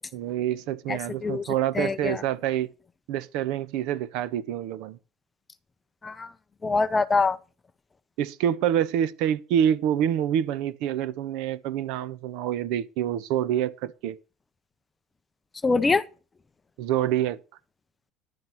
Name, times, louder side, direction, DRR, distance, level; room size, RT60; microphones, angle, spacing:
voice 1, 0.1-2.7 3.1-5.0 8.2-14.2 16.8-17.4, right 10 dB, 65° right, 0.9 m, -27 dB
voice 2, 0.9-1.4 1.7-2.2 6.0-6.3 6.6-7.4 15.6-16.0, left 4 dB, 15° left, 0.5 m, -24 dB
11.0 x 8.0 x 5.7 m
cardioid pair, 160°, 0 cm